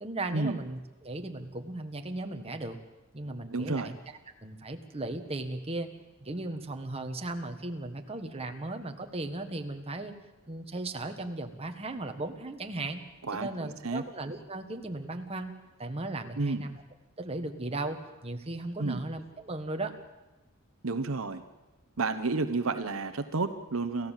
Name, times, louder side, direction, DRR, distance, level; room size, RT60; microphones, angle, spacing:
voice 1, 0.0-2.8 3.1-4.0 4.4-5.9 6.2-10.1 10.5-13.0 13.3-15.5 15.8-16.8 17.2-19.9, right 2 dB, 30° right, 5 dB, 1.6 m, -36 dB
voice 2, 3.5-3.9 13.3-14.0 16.4-16.7 18.8-19.0 20.8-21.4 22.0-24.1, right 3 dB, 70° right, 9 dB, 1.0 m, -31 dB
28.5 x 15.0 x 7.5 m, 1.1 s
head